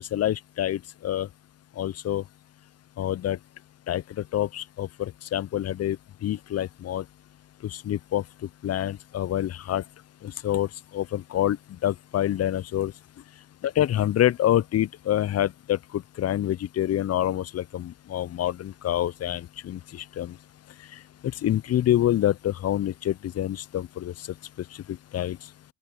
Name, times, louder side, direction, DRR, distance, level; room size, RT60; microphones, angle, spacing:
voice 1, 0.1-1.3 1.8-2.2 3.0-3.4 3.9-4.0 4.3-6.0 6.2-7.0 7.9-8.2 8.6-9.8 10.4-10.7 10.9-11.6 11.8-12.9 13.6-19.8 20.2-20.3 21.4-24.1 25.1-25.4, left 12 dB, 50° left, 0.5 m, -26 dB
open air
supercardioid pair, 60°, 33 cm